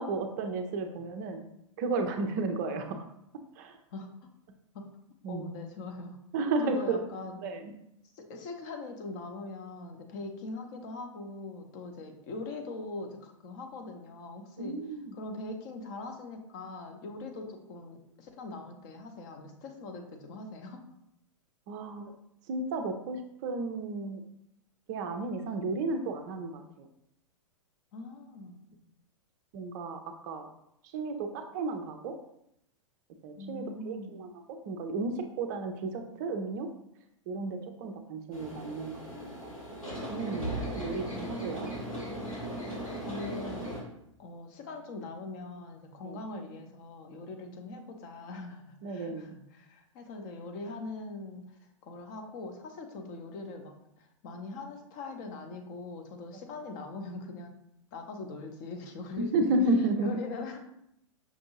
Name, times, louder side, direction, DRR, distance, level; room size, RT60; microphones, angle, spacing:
voice 1, 0.0-1.5 1.8-3.1 3.6-3.8 5.2-5.5 6.3-7.0 7.4-7.7 14.6-15.1 21.7-22.1 22.5-24.2 24.9-26.9 29.5-30.5 30.9-32.1 33.2-36.7 37.3-39.5 40.1-41.7 46.0-46.2 48.8-49.3 59.2-60.2, right 3 dB, 35° right, 5 dB, 0.4 m, -33 dB
voice 2, 5.3-6.2 6.6-7.4 8.1-14.7 15.1-20.8 27.9-28.6 33.4-34.2 43.0-43.7 44.2-51.4 51.8-57.5 57.9-59.5 60.0-60.6, left 3 dB, 35° left, 4 dB, 0.6 m, -41 dB
sound 1, 38.3-43.8, right 1 dB, 90° left, 1.5 m, -37 dB
5.8 x 2.5 x 2.8 m, 0.77 s
figure-of-eight pair, 105°, 17 cm